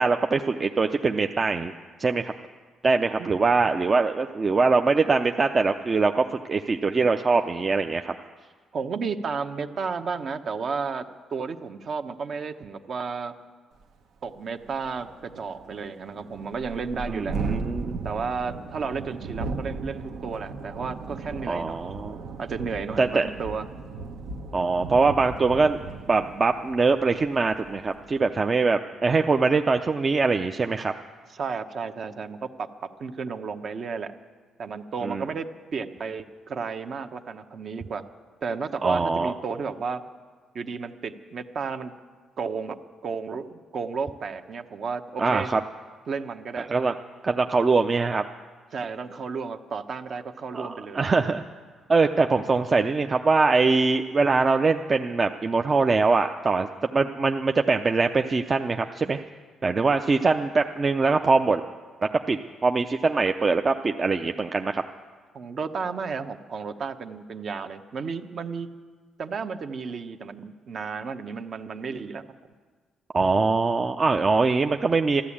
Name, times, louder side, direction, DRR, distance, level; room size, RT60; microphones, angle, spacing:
voice 1, 0.0-1.7 2.0-2.3 2.8-8.1 17.1-18.0 21.5-22.2 23.0-23.3 24.5-25.8 26.1-30.9 35.0-35.3 38.8-39.3 45.2-45.6 46.7-46.9 47.2-48.2 50.5-51.4 51.9-56.7 56.9-59.2 59.6-61.6 62.3-64.8 73.1-75.2, right 4 dB, 35° right, 6 dB, 0.5 m, -23 dB
voice 2, 8.7-11.0 11.3-13.3 14.2-17.4 18.0-21.9 22.4-23.6 31.3-32.7 33.0-34.1 34.6-38.0 38.4-40.0 40.5-41.9 42.4-42.8 43.0-45.5 46.1-46.7 48.7-51.0 65.3-68.7 69.2-72.2, right 5 dB, 55° right, 8 dB, 0.9 m, -32 dB
Thunderstorm, 13.8-13.9 14.3-14.4 14.7-28.3, right 4 dB, 80° right, 1.1 m, -37 dB
13.0 x 12.5 x 8.6 m, 1.5 s
cardioid pair, 90°, 0 cm